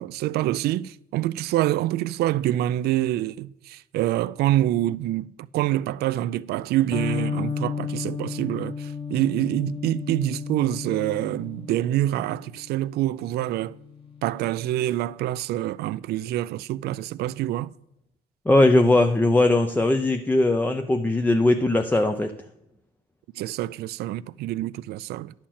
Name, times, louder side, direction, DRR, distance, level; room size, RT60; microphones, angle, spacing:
voice 1, 0.0-13.8 14.2-17.7 23.4-25.3, right 14 dB, 70° right, 0.4 m, -26 dB
Electric guitar, 6.9-14.8, left 6 dB, 30° left, 1.4 m, -34 dB
voice 2, 18.5-22.3, left 2 dB, 10° left, 0.6 m, -19 dB
11.0 x 4.4 x 7.5 m
cardioid pair, 110°, 17 cm